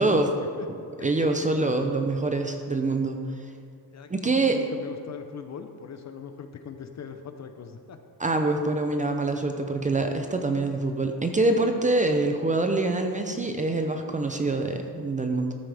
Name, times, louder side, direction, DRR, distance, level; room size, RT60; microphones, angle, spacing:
voice 1, 0.0-0.7 1.2-1.3 3.9-8.0, left 6 dB, 40° left, 7 dB, 0.7 m, -40 dB
voice 2, 0.7-3.2 4.1-4.6 8.2-15.5, right 2 dB, 20° right, 5 dB, 0.5 m, -25 dB
14.0 x 9.1 x 3.4 m, 2.3 s
cardioid pair, 150°, 41 cm